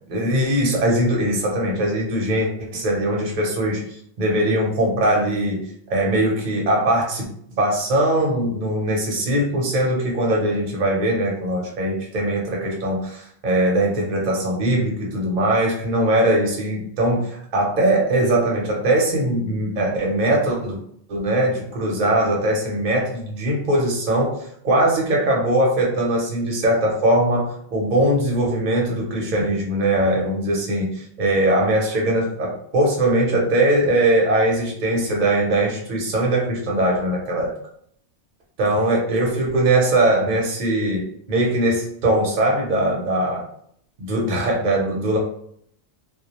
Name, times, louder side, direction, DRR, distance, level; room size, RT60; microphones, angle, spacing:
voice 1, 0.1-3.8 4.2-7.2 7.5-20.8 21.1-24.4 24.6-37.5 38.6-43.4 44.0-45.2, right 1 dB, 50° right, -2 dB, 0.8 m, -21 dB
2.2 x 2.1 x 2.9 m, 0.66 s
omnidirectional pair, 1.2 m